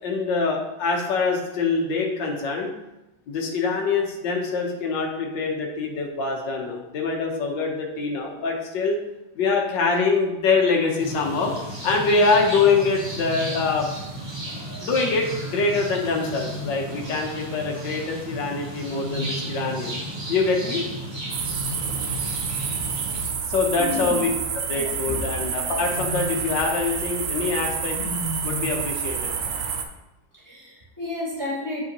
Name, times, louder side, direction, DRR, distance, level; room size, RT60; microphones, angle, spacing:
voice 1, 0.0-2.7 3.3-9.0 9.3-11.5 11.8-13.9 14.8-20.0 20.3-20.8 23.5-24.3 24.5-28.0 28.4-29.3, left 4 dB, 80° left, 1 dB, 1.7 m, -24 dB
sound 1, 11.0-23.3, right 1 dB, 15° right, 1.1 m, -34 dB
Wild animals, 13.1-13.8 16.1-17.1 18.8-19.9 21.4-22.3 23.9-25.0 25.7-26.6 27.9-28.9, equal, 35° right, 2.4 m, -36 dB
sound 2, 21.3-29.8, right 6 dB, 65° right, 1.0 m, -29 dB
voice 2, 23.7-24.2 24.7-25.3 30.3-31.8, left 2 dB, 10° left, -7 dB, 1.7 m, -32 dB
8.7 x 5.0 x 2.9 m, 0.92 s
omnidirectional pair, 1.9 m